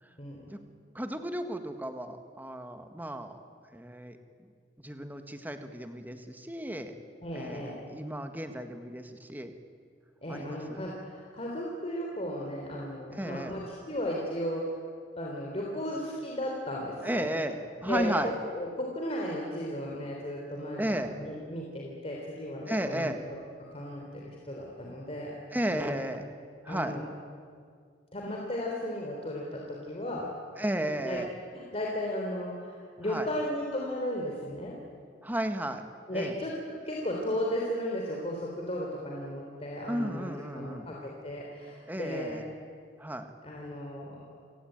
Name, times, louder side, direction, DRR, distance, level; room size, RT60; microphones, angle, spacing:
voice 1, 0.9-3.4 3.7-4.2 4.8-6.9 7.3-9.5 10.3-10.9 13.1-13.6 17.0-18.3 20.8-21.1 22.7-23.2 25.5-26.2 26.6-27.0 30.6-31.3 33.1-33.3 35.2-35.8 36.1-36.3 39.9-40.9 41.9-42.5 43.0-43.3, right 1 dB, 10° right, 7 dB, 1.7 m, -34 dB
voice 2, 7.2-7.8 10.2-14.8 15.2-17.3 17.8-18.1 18.5-23.1 23.7-25.3 25.7-26.0 26.7-27.0 28.1-30.3 31.0-31.2 31.5-34.8 36.1-42.4 43.4-44.2, left 1 dB, 35° left, -2 dB, 3.6 m, -35 dB
29.5 x 17.5 x 9.0 m, 2.1 s
head